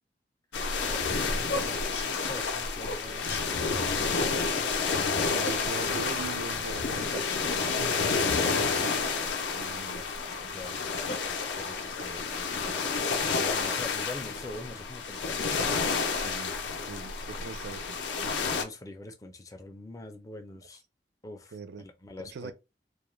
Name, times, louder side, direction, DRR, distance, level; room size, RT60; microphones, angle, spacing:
sound 1, 0.5-18.6, left 4 dB, 90° left, 0.5 m, -30 dB
voice 1, 0.8-4.4 9.9-10.1 10.4-15.5 16.8-17.5 18.2-20.8 21.2-22.5, left 2 dB, 20° left, 0.4 m, -44 dB
sound 2, 0.9-4.1 4.4-4.5 4.8-5.0 5.4-6.4 7.0-8.1 8.9-10.0 10.6-11.8, left 1 dB, 60° left, 0.8 m, -41 dB
sound 3, 2.8-12.7, right 2 dB, 50° right, 0.8 m, -52 dB
voice 2, 5.2-9.0 9.5-10.0 16.1-16.6 16.9-18.0 21.5-21.9 22.2-22.5, right 4 dB, 75° right, 0.3 m, -41 dB
2.3 x 2.1 x 3.0 m
head